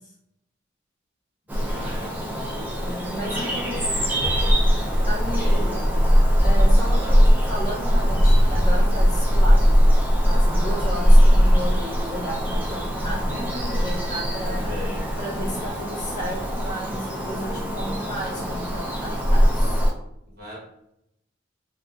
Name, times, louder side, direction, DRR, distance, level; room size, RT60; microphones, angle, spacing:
Bird vocalization bird call bird song, 1.5-19.9, equal, 10° right, 0.3 m, -20 dB
voice 1, 1.5-2.3 3.0-4.6 5.3-5.9 6.8-7.2 13.3-14.0 14.3-15.1 20.3-20.6, left 1 dB, 50° right, -6 dB, 1.1 m, -37 dB
voice 2, 2.8-3.8 5.1-5.8 6.4-9.7 10.2-13.4 13.7-14.7 15.2-19.8, right 1 dB, 20° left, -7 dB, 0.9 m, -33 dB
2.4 x 2.3 x 2.3 m, 0.77 s
head